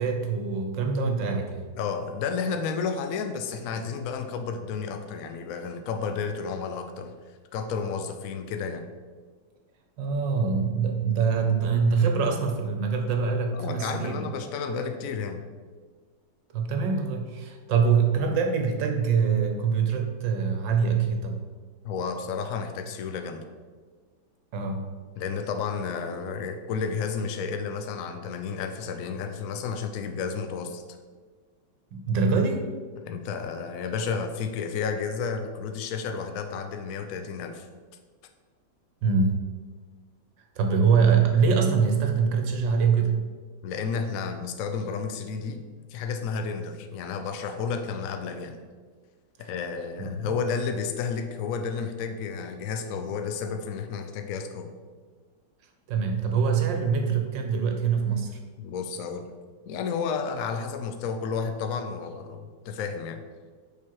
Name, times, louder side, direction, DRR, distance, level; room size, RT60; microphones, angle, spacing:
voice 1, 0.0-1.6 10.0-14.3 16.5-21.4 24.5-24.9 31.9-32.7 39.0-39.4 40.6-43.3 50.0-50.3 55.9-58.4, right 5 dB, 70° right, 4 dB, 1.5 m, -24 dB
voice 2, 1.8-7.1 7.5-8.9 13.5-15.5 21.8-23.4 25.2-30.8 33.0-37.7 43.6-45.6 45.9-48.6 49.4-54.7 58.6-59.4 59.6-63.2, left 5 dB, 85° left, 6 dB, 0.7 m, -31 dB
6.9 x 5.4 x 4.7 m, 1.5 s
omnidirectional pair, 2.3 m